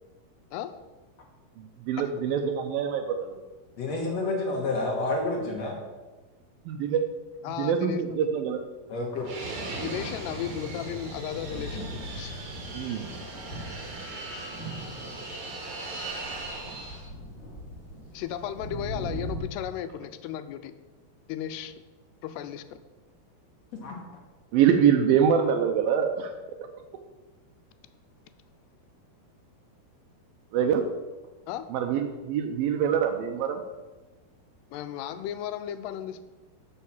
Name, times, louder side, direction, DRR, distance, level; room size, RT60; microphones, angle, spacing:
voice 1, 1.9-3.4 6.7-7.0 7.6-8.6 12.7-13.1 24.5-26.3 30.5-30.8 31.7-33.6, right 8 dB, 75° right, 5 dB, 2.2 m, -24 dB
voice 2, 3.8-5.8 8.9-9.3 23.8-24.0, left 2 dB, 55° left, 0 dB, 2.0 m, -29 dB
voice 3, 7.4-8.3 9.8-12.3 18.1-20.7 21.3-21.7 22.2-22.8 31.5-31.7 34.7-36.2, left 10 dB, 85° left, 11 dB, 2.7 m, -35 dB
Fixed-wing aircraft airplane, 9.2-17.1, right 2 dB, 45° right, 2.1 m, -38 dB
Thunder, 9.9-19.4, right 1 dB, 15° left, 3.1 m, -41 dB
12.0 x 5.6 x 7.1 m, 1.2 s
omnidirectional pair, 4.7 m